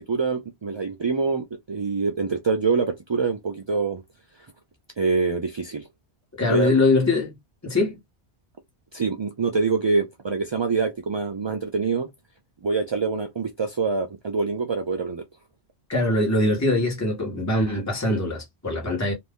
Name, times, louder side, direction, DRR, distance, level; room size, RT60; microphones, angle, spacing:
voice 1, 0.0-4.0 5.0-5.9 6.5-6.7 8.9-12.1 12.6-15.2, right 4 dB, 45° right, 0.3 m, -25 dB
voice 2, 6.4-7.3 7.6-8.0 15.9-19.1, left 2 dB, 15° left, 1.2 m, -22 dB
2.5 x 2.5 x 3.6 m
omnidirectional pair, 1.1 m